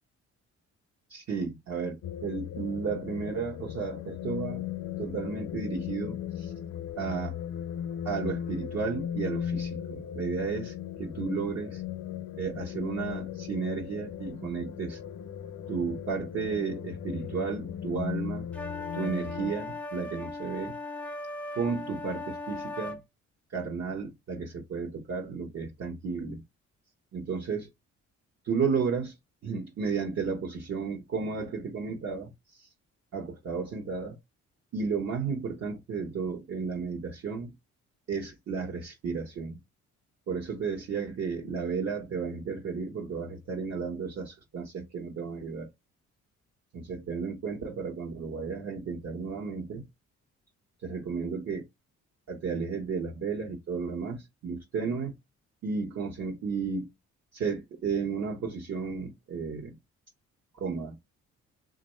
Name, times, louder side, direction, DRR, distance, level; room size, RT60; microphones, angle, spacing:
voice 1, 1.1-2.0 2.2-4.6 5.0-6.5 7.0-7.4 8.0-11.8 12.4-15.0 15.7-18.5 18.9-20.7 21.5-23.0 23.5-26.4 27.1-27.7 28.4-29.1 29.4-32.7 33.1-34.2 34.7-37.5 38.1-39.6 40.3-45.7 46.7-49.8 50.8-51.6 52.3-55.1 55.6-56.9 57.3-59.7 60.6-60.9, right 5 dB, 55° right, 1.0 m, -33 dB
sound 1, 2.0-19.5, left 9 dB, 65° left, 0.5 m, -37 dB
sound 2, 18.5-23.0, left 2 dB, 5° left, 0.4 m, -38 dB
3.0 x 2.5 x 4.2 m
cardioid pair, 90°, 30 cm